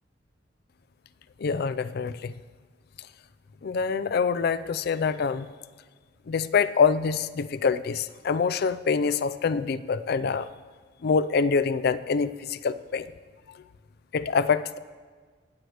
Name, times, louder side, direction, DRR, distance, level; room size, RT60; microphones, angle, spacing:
voice 1, 1.4-2.3 3.6-5.5 6.3-10.5 11.0-13.1 14.1-14.8, left 5 dB, 55° left, 15 dB, 0.4 m, -25 dB
18.5 x 7.8 x 3.3 m, 1.5 s
head